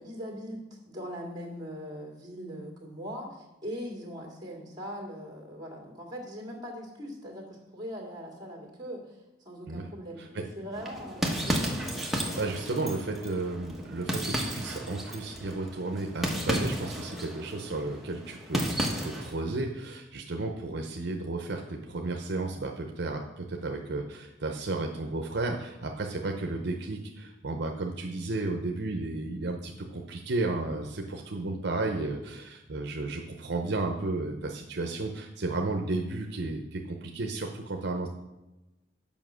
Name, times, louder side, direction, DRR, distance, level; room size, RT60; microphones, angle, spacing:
voice 1, 0.0-12.2, equal, 20° right, -1 dB, 2.3 m, -41 dB
sound 1, 10.7-19.4, equal, ahead, 1.1 m, -33 dB
voice 2, 12.4-38.1, right 2 dB, 65° right, 3 dB, 0.7 m, -33 dB
7.2 x 5.6 x 6.2 m, 1.0 s
head